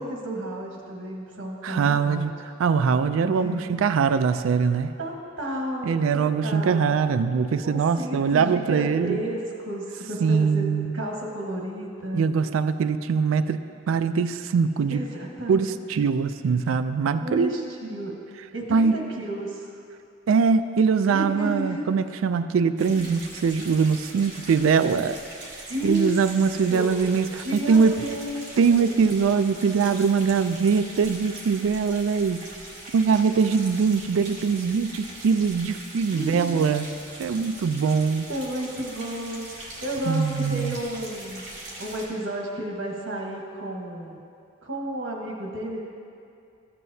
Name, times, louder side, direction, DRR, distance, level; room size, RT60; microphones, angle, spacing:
voice 1, 0.0-2.2 3.3-3.7 4.7-7.0 7.6-12.3 14.9-15.8 17.2-18.1 18.5-19.8 21.1-21.8 22.9-23.1 25.7-26.1 26.7-27.1 27.4-28.9 36.1-36.7 38.1-41.5 41.8-44.2 44.6-45.8, right 1 dB, 70° right, -1 dB, 1.4 m, -32 dB
voice 2, 1.6-2.3 2.6-4.9 5.8-9.2 10.2-11.0 12.1-13.6 13.9-15.0 15.5-17.7 18.7-18.9 20.3-25.2 25.8-28.0 28.6-32.5 32.9-36.9 37.2-38.3 40.1-40.8, right 5 dB, 85° right, 12 dB, 0.3 m, -22 dB
sound 1, 22.8-42.1, right 1 dB, 40° right, 1.7 m, -41 dB
13.5 x 7.6 x 2.7 m, 2.5 s
head